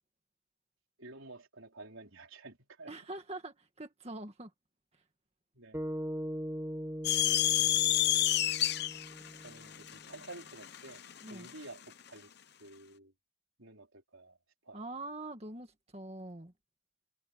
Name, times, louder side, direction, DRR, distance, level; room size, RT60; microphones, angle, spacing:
voice 1, 1.0-2.9 5.5-5.8 9.4-12.3 12.6-13.1 13.6-14.4 14.6-14.8, right 2 dB, 80° right, 3.8 m, -51 dB
voice 2, 2.9-4.5 11.2-11.5 14.7-16.5, right 2 dB, 30° right, 2.0 m, -44 dB
sound 1, 5.7-10.1, equal, 10° right, 5.8 m, -41 dB
sound 2, 7.0-11.6, left 13 dB, 50° left, 0.9 m, -29 dB
head